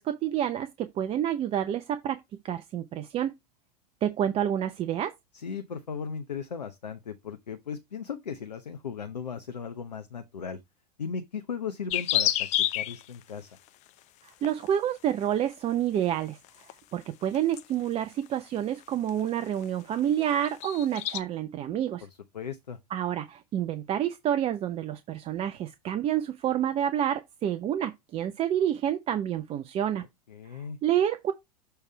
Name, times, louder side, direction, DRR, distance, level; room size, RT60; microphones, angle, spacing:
voice 1, 0.0-2.2 2.4-3.3 4.0-5.1 14.2-16.4 16.9-22.0 22.9-30.0 30.5-31.3, right 10 dB, 30° right, 0.6 m, -28 dB
voice 2, 5.3-10.6 11.0-12.5 12.7-13.6 22.0-22.1 22.3-22.8 30.3-30.8, left 6 dB, 85° left, 0.8 m, -37 dB
sound 1, 11.9-13.0 14.4-14.8 16.2-16.7 17.3-17.6 18.3-18.4 19.1-19.2 19.4-19.6 19.9-21.2, left 13 dB, 35° left, 0.6 m, -28 dB
6.8 x 3.4 x 4.4 m
hypercardioid pair, 100°, 21 cm